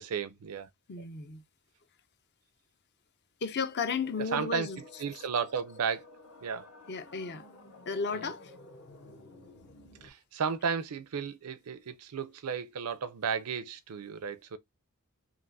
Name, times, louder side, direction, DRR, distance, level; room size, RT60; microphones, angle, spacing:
voice 1, 0.0-0.7 4.2-4.7 5.0-6.0 6.4-6.7 8.1-8.2 10.0-14.6, right 6 dB, 85° right, 0.5 m, -34 dB
voice 2, 0.9-1.4 3.4-4.8 6.9-7.4 7.9-8.5, left 5 dB, 50° left, 0.6 m, -34 dB
sound 1, 3.6-10.1, left 2 dB, 65° left, 1.2 m, -53 dB
5.9 x 2.5 x 2.6 m
head